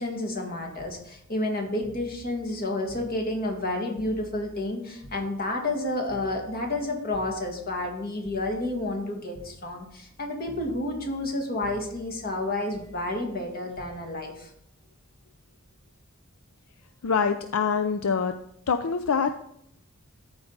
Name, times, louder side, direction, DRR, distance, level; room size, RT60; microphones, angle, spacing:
voice 1, 0.0-14.5, left 2 dB, 45° left, 2 dB, 2.0 m, -30 dB
sound 1, 0.8-4.7 5.0-9.0 9.3-10.2 10.5-11.4 11.6-15.6 16.8-17.1, equal, 20° left, 1.3 m, -50 dB
voice 2, 17.0-18.3 18.7-19.3, left 6 dB, 75° left, 9 dB, 0.5 m, -24 dB
14.0 x 4.8 x 4.0 m, 0.72 s
head